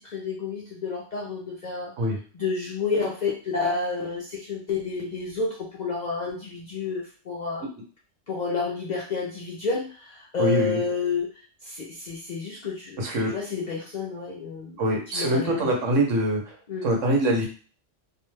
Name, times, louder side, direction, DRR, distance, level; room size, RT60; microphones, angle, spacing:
voice 1, 0.0-1.9 2.3-7.7 8.3-14.8 15.1-15.7 16.7-16.9, left 4 dB, 55° left, -4 dB, 0.5 m, -30 dB
voice 2, 10.4-10.8 13.0-13.3 14.8-16.6 16.8-17.5, right 1 dB, 80° right, 0 dB, 1.2 m, -24 dB
2.6 x 2.2 x 3.1 m, 0.38 s
omnidirectional pair, 1.3 m